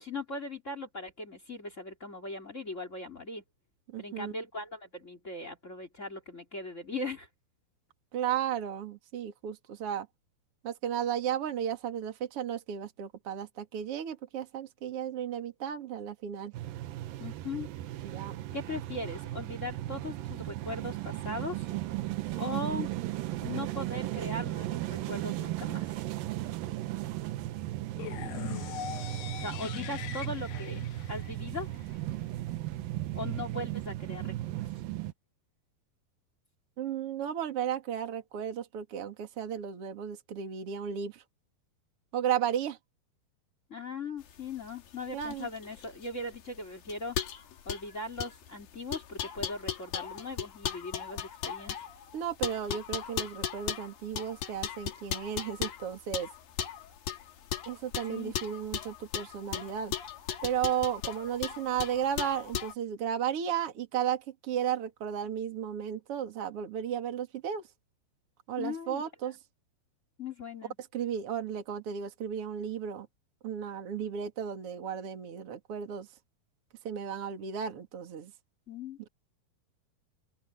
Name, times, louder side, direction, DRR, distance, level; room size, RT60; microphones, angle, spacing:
voice 1, 0.0-3.4 4.0-7.3 17.2-17.7 18.5-21.7 22.3-22.9 23.4-25.9 29.3-30.8 31.1-31.7 33.1-34.7 43.7-47.2 47.6-51.9 58.0-58.3 68.6-69.0 70.2-70.7 78.7-79.0, left 2 dB, 20° left, 2.4 m, -39 dB
voice 2, 3.9-4.3 8.1-10.1 10.6-16.5 18.0-18.5 36.8-41.2 42.1-42.8 45.1-45.5 52.1-56.3 57.7-59.9 60.4-67.6 68.5-69.4 70.9-73.1 73.4-76.1 76.8-78.3, right 9 dB, 40° right, 2.9 m, -34 dB
sound 1, 16.5-35.1, right 15 dB, 75° right, 2.4 m, -36 dB
sound 2, 28.0-31.9, left 11 dB, 80° left, 3.3 m, -41 dB
sound 3, 44.3-62.7, left 9 dB, 65° left, 3.4 m, -37 dB
open air
omnidirectional pair, 4.7 m